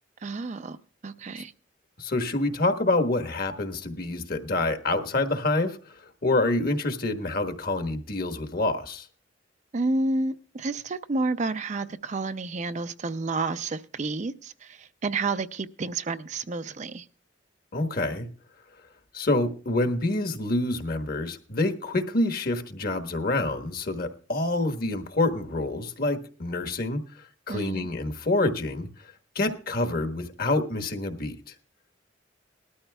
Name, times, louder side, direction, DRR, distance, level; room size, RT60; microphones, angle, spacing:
voice 1, 0.2-0.8 1.0-1.5 9.7-17.1 27.5-27.9, right 3 dB, 40° right, 11 dB, 0.5 m, -30 dB
voice 2, 2.0-9.1 17.7-18.3 19.1-28.9 29.3-31.5, left 2 dB, 50° left, 7 dB, 1.2 m, -27 dB
20.0 x 13.0 x 2.3 m, 0.38 s
head